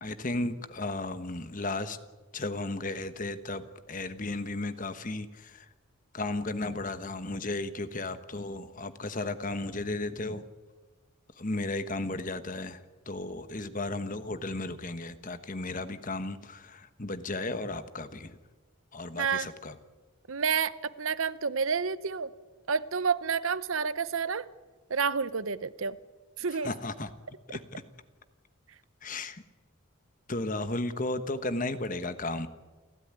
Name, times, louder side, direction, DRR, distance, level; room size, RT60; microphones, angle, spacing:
voice 1, 0.0-2.0 2.3-5.7 6.1-10.4 11.4-18.4 18.9-19.8 26.5-27.1 27.5-27.8 29.0-29.4 30.3-32.5, left 2 dB, 40° left, 1.2 m, -34 dB
voice 2, 19.2-19.5 20.3-22.3 22.7-24.4 24.9-26.0 26.4-26.7, right 6 dB, 70° right, 0.8 m, -29 dB
29.5 x 12.5 x 9.7 m
head